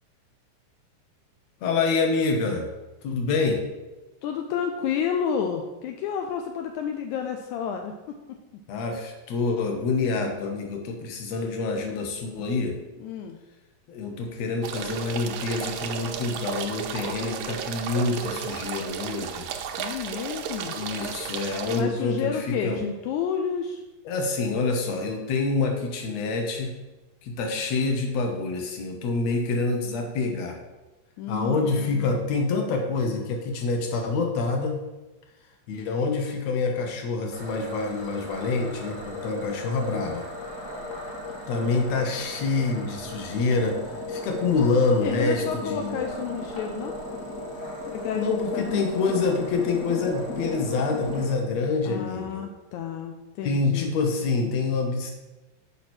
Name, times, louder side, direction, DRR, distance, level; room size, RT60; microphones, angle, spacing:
voice 1, 1.6-2.7 3.0-3.7 8.7-12.8 13.9-19.5 20.7-22.8 24.1-26.7 27.2-30.6 31.3-34.8 35.7-40.3 41.5-46.0 48.1-52.5 53.4-55.1, left 3 dB, 65° left, 3 dB, 2.0 m, -26 dB
voice 2, 4.2-8.2 13.0-13.4 19.8-20.8 21.7-23.8 31.2-32.1 45.0-47.0 47.9-48.2 48.5-48.9 51.9-53.9, left 7 dB, 80° left, 4 dB, 1.7 m, -30 dB
sound 1, 14.6-21.8, right 8 dB, 80° right, 1.7 m, -34 dB
sound 2, 37.3-51.3, left 2 dB, 40° left, 1.1 m, -36 dB
7.1 x 5.0 x 6.0 m, 1.1 s
omnidirectional pair, 3.9 m